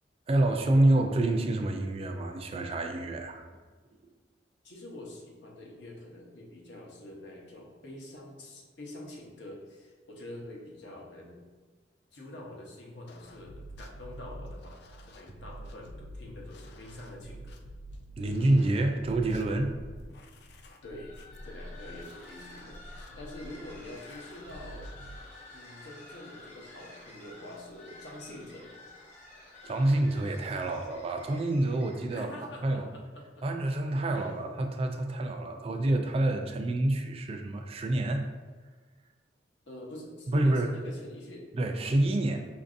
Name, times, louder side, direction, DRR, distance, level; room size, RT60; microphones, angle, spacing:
voice 1, 0.3-3.5 18.2-19.7 29.6-32.3 32.6-32.9 33.4-38.2 40.3-40.7 41.5-42.4, right 1 dB, 35° right, 5 dB, 0.3 m, -27 dB
voice 2, 4.6-11.5 12.1-17.6 20.8-21.2 21.4-24.9 25.5-28.7 32.1-33.5 34.1-34.3 39.7-41.5, left 1 dB, 85° left, -2 dB, 0.8 m, -46 dB
sound 1, 13.1-25.2, right 1 dB, 65° left, 0.3 m, -47 dB
sound 2, 20.8-32.2, left 2 dB, 40° left, 1.0 m, -51 dB
5.1 x 2.6 x 2.5 m, 1.4 s
head